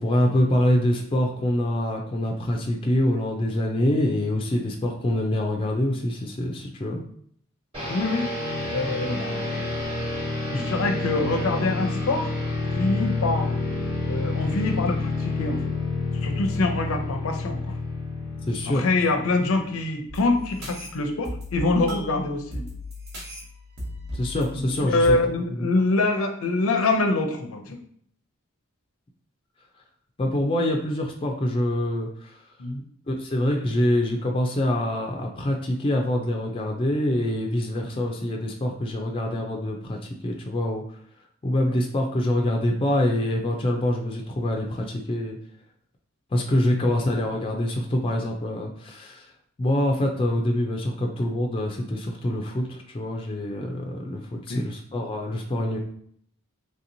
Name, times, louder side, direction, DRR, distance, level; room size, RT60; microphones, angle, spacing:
voice 1, 0.0-7.0 18.5-18.8 24.1-25.2 25.6-25.7 30.2-32.3 33.1-40.0 40.2-40.8 41.4-45.4 46.3-49.2 49.6-55.8, left 1 dB, 25° left, 1 dB, 0.3 m, -25 dB
sound 1, 7.7-19.9, left 3 dB, 25° right, 1.1 m, -29 dB
voice 2, 7.9-8.2 8.7-9.7 10.5-12.3 12.7-13.5 14.1-15.6 16.1-17.7 18.7-22.6 24.9-27.8 32.6-32.8 41.7-41.8 46.7-46.9 54.5-54.6, left 2 dB, 80° left, 4 dB, 0.5 m, -25 dB
sound 2, 20.1-25.1, left 1 dB, 50° right, 0.9 m, -37 dB
3.2 x 2.8 x 2.6 m, 0.65 s
head